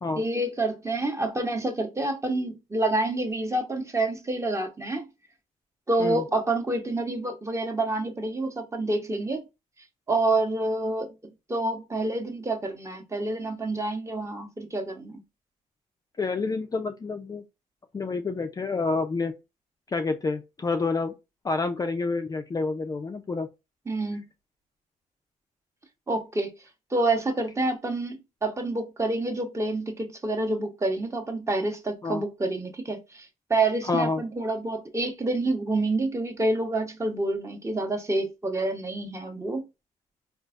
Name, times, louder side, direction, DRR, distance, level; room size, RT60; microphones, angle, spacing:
voice 1, 0.2-5.1 5.9-9.4 10.1-11.1 11.5-15.2 23.9-24.2 26.1-26.5 26.9-39.7, right 2 dB, 20° right, 0.8 m, -28 dB
voice 2, 16.2-17.4 17.9-19.3 19.9-21.1 21.4-23.5 32.0-32.2 33.9-34.2, left 3 dB, 25° left, 0.4 m, -28 dB
3.8 x 2.4 x 2.4 m
cardioid pair, 75°, 14 cm